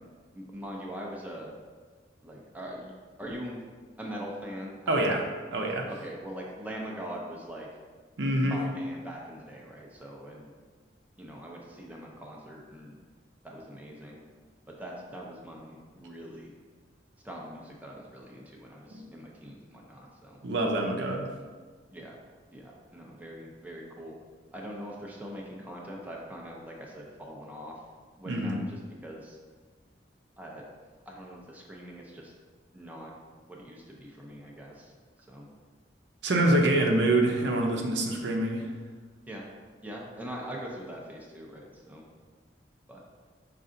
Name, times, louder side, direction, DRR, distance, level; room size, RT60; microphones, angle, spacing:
voice 1, 0.3-1.5 2.2-2.9 3.2-3.6 4.0-5.2 5.9-7.7 8.4-10.5 11.2-13.0 13.4-14.2 14.7-16.5 17.2-20.4 21.9-22.2 22.5-24.2 24.5-27.8 28.2-29.4 30.4-30.6 31.1-32.3 32.7-33.1 33.5-34.9 35.3-35.5 39.3-39.5 39.8-42.0 42.9-43.0, equal, 10° right, -2 dB, 0.5 m, -42 dB
voice 2, 4.9-5.2 5.5-5.9 8.2-8.6 18.9-19.0 20.4-21.3 28.3-28.6 36.2-38.7, right 1 dB, 75° right, 0 dB, 0.6 m, -25 dB
5.3 x 2.5 x 3.7 m, 1.5 s
head